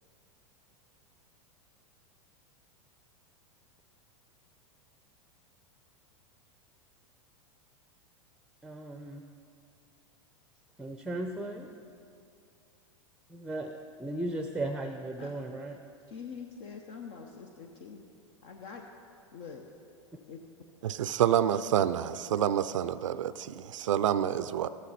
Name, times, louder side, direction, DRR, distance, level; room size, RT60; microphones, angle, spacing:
voice 1, 8.6-9.2 10.8-11.7 13.3-13.7 14.0-15.8, right 1 dB, 5° right, 0.6 m, -36 dB
voice 2, 16.1-18.1 18.4-18.8 19.3-19.6 20.3-20.4, left 6 dB, 60° left, 0.9 m, -44 dB
voice 3, 20.8-24.7, right 10 dB, 75° right, 0.4 m, -28 dB
13.5 x 11.5 x 4.2 m
hypercardioid pair, 95°, 17 cm